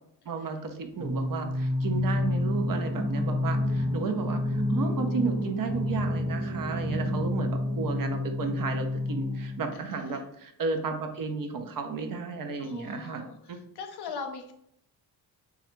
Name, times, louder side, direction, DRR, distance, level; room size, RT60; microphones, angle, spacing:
voice 1, 0.3-13.6, right 4 dB, 45° right, 6 dB, 0.6 m, -33 dB
Singing, 0.9-9.9, left 1 dB, 75° right, 1.2 m, -29 dB
voice 2, 9.7-10.2 12.6-14.5, left 5 dB, 55° left, 5 dB, 0.7 m, -41 dB
3.2 x 2.3 x 3.0 m, 0.74 s
supercardioid pair, 45°, 47 cm